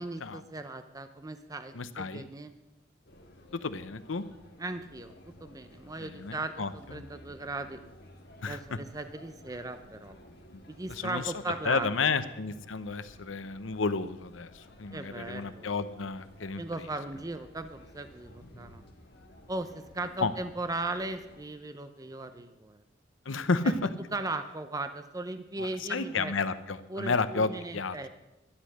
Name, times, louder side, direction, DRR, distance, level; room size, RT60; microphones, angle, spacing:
voice 1, 0.0-2.5 4.6-7.8 8.5-10.1 10.7-12.1 14.9-15.7 16.6-18.8 19.5-22.8 23.5-23.6 24.1-26.3 26.9-28.1, right 2 dB, 20° right, 9 dB, 0.6 m, -37 dB
voice 2, 1.7-2.3 3.5-4.2 6.0-7.0 8.4-8.8 10.5-10.6 10.9-11.3 11.6-16.9 20.2-20.3 23.2-23.9 25.6-28.1, left 4 dB, 80° left, 12 dB, 0.8 m, -32 dB
sound 1, 3.1-21.4, left 1 dB, 60° left, 1.7 m, -54 dB
12.5 x 10.0 x 6.4 m, 0.92 s
head